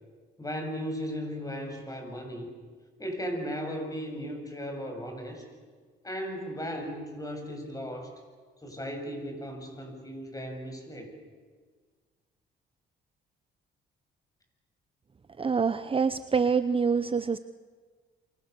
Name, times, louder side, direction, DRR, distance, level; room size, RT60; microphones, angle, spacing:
voice 1, 0.4-2.5 3.0-5.4 6.0-8.1 8.6-11.1, equal, 15° left, 4 dB, 7.1 m, -36 dB
voice 2, 15.4-17.4, right 5 dB, 25° right, 12 dB, 0.8 m, -26 dB
28.5 x 24.5 x 7.0 m, 1.5 s
cardioid pair, 90°, 20 cm